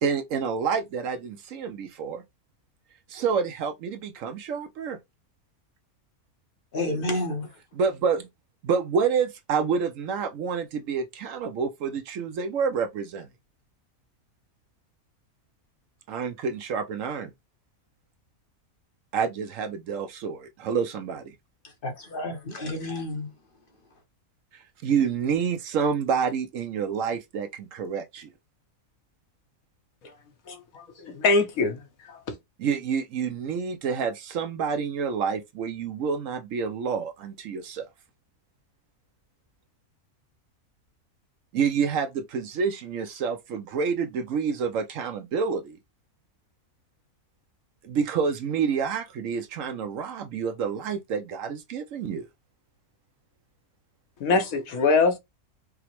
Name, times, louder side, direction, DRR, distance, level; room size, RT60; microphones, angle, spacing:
voice 1, 0.0-2.2 3.1-5.0 7.7-8.3 8.6-13.3 16.1-17.3 19.1-21.3 24.5-28.3 32.6-37.9 41.5-45.8 47.8-52.3, right 6 dB, 70° right, 0.9 m, -28 dB
voice 2, 6.7-7.5 21.8-23.3, left 1 dB, 45° left, 0.8 m, -30 dB
voice 3, 30.5-31.8 32.1-32.4 54.2-55.2, left 3 dB, 70° left, 1.3 m, -23 dB
4.9 x 2.1 x 2.9 m
omnidirectional pair, 1.6 m